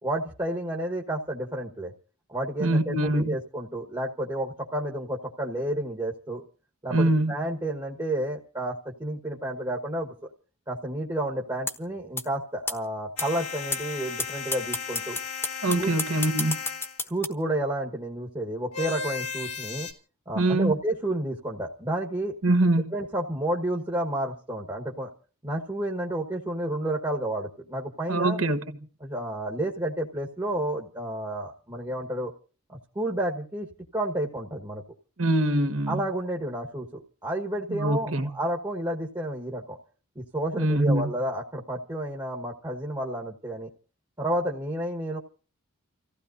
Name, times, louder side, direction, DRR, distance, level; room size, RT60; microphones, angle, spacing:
voice 1, 0.0-1.9 2.3-6.4 6.8-10.3 10.7-15.2 15.7-15.9 17.1-19.9 20.3-22.3 22.9-25.1 25.4-28.4 29.0-32.3 32.7-33.7 33.9-34.8 35.9-39.8 40.1-43.7 44.2-45.2, right 1 dB, 20° right, 1.3 m, -31 dB
voice 2, 2.6-3.4 6.9-7.3 15.6-16.7 20.3-20.7 22.4-22.9 28.1-28.6 35.2-36.0 37.7-38.3 40.6-41.1, right 1 dB, 65° right, 1.3 m, -24 dB
sound 1, 11.7-11.8 12.2-12.3 12.7-12.8 13.2-13.3 13.7-13.8 14.2-14.3 14.5-17.3, left 3 dB, 10° left, 1.2 m, -28 dB
sound 2, 13.2-17.0 18.7-19.9, left 6 dB, 85° left, 2.2 m, -35 dB
30.0 x 15.5 x 2.6 m
head